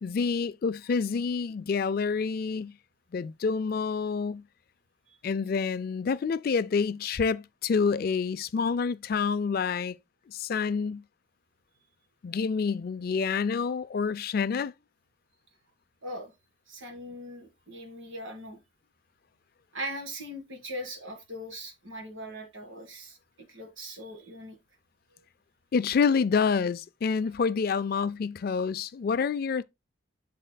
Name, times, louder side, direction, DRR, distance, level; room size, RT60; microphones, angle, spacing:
voice 1, 0.0-2.7 3.1-4.4 5.2-10.0 10.3-11.0 12.2-14.7 25.7-29.6, left 5 dB, 45° left, 0.3 m, -28 dB
voice 2, 16.0-16.3 16.7-18.6 19.7-24.6, equal, 70° right, 1.9 m, -40 dB
7.6 x 6.5 x 2.2 m
head